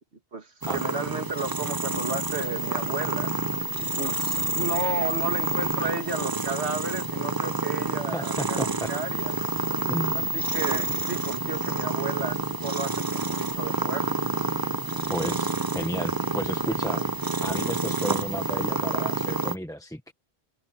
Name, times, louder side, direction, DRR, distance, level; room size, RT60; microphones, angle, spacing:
voice 1, 0.3-3.3 3.8-8.6 8.9-9.3 10.1-14.3, right 3 dB, 80° right, 2.2 m, -33 dB
sound 1, 0.6-19.6, right 3 dB, 25° right, 0.6 m, -28 dB
voice 2, 8.1-8.9 9.9-10.1 15.1-17.1 17.4-20.1, equal, 5° left, 1.2 m, -33 dB
omnidirectional pair, 1.1 m